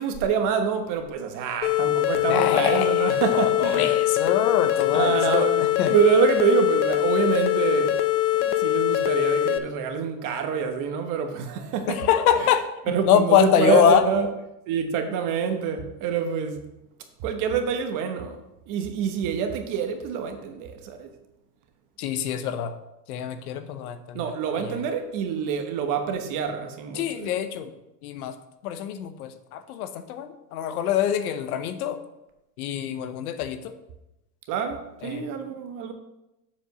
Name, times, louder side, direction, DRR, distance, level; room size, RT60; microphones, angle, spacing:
voice 1, 0.0-4.0 4.9-5.6 5.9-8.1 8.4-12.0 12.9-14.3 14.7-16.6 17.2-18.4 18.7-21.1 24.1-27.3 34.5-35.9, right 7 dB, 40° right, 1.1 m, -26 dB
sound 1, 1.6-9.6, left 14 dB, 90° left, 0.8 m, -23 dB
voice 2, 2.3-5.9 11.9-12.7 13.0-14.0 22.0-22.7 23.1-24.2 24.5-24.8 26.9-27.7 28.0-28.3 28.6-32.0 32.6-33.7 35.0-35.3, left 9 dB, 60° left, 0.9 m, -24 dB
7.3 x 5.1 x 5.3 m
supercardioid pair, 130°, 50 cm